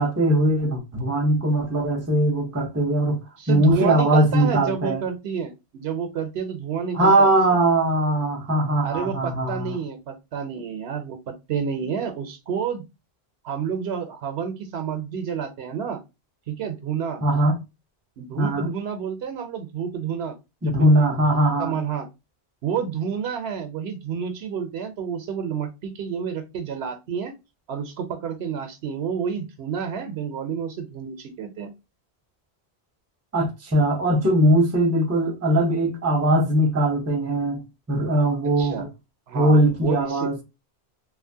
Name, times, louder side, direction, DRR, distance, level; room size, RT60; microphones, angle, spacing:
voice 1, 0.0-3.2 3.5-5.0 6.9-9.8 17.2-17.6 18.4-18.7 20.6-21.8 33.3-37.6 37.9-38.9 39.3-40.4, right 1 dB, 15° right, 0.6 m, -20 dB
voice 2, 3.4-7.3 8.8-12.8 13.4-16.0 16.5-17.2 18.2-20.4 20.6-20.9 21.6-22.1 22.6-27.3 27.7-31.7 38.6-38.9 39.3-40.3, right 7 dB, 70° right, 0.8 m, -29 dB
2.8 x 2.4 x 2.6 m
omnidirectional pair, 1.1 m